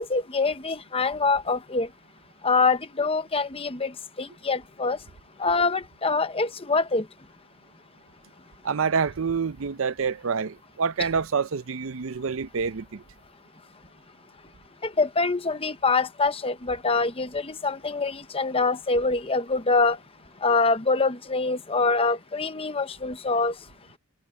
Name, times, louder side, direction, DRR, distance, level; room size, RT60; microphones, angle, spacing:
voice 1, 0.0-1.9 2.4-5.0 5.4-7.1 14.8-20.0 20.4-23.5, left 3 dB, 25° left, 0.9 m, -25 dB
voice 2, 8.6-13.0, right 5 dB, 60° right, 0.5 m, -27 dB
head